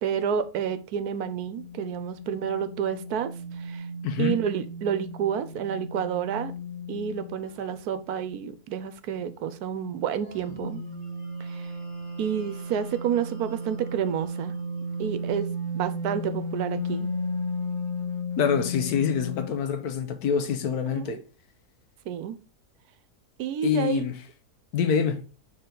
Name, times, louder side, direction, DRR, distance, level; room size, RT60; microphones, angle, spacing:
voice 1, 0.0-3.9 4.2-6.5 6.9-10.8 11.4-11.7 12.2-14.5 15.0-17.1 20.9-21.2 22.1-22.4 23.4-24.0, right 8 dB, 75° right, 1.2 m, -30 dB
sound 1, 1.4-7.6 10.2-19.5, left 1 dB, 35° left, 3.5 m, -34 dB
voice 2, 4.0-4.4 18.4-21.2 23.6-24.1 24.7-25.2, left 7 dB, 75° left, 1.4 m, -26 dB
6.7 x 4.0 x 3.8 m
omnidirectional pair, 1.7 m